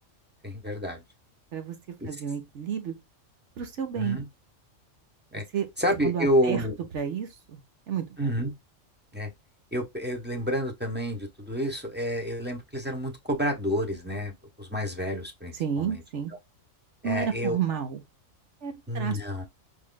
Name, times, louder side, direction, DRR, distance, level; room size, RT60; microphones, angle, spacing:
voice 1, 0.4-1.0 4.0-4.2 5.3-5.4 5.8-6.8 8.2-8.5 9.1-9.3 9.7-14.3 14.6-16.0 17.0-17.6 18.9-19.5, equal, 10° right, 0.9 m, -29 dB
voice 2, 2.1-2.9 3.6-4.2 5.5-5.7 6.0-6.6 6.9-8.3 15.6-16.3 17.0-18.0 18.6-19.2, right 8 dB, 65° right, 1.3 m, -31 dB
4.9 x 3.1 x 2.2 m
omnidirectional pair, 1.3 m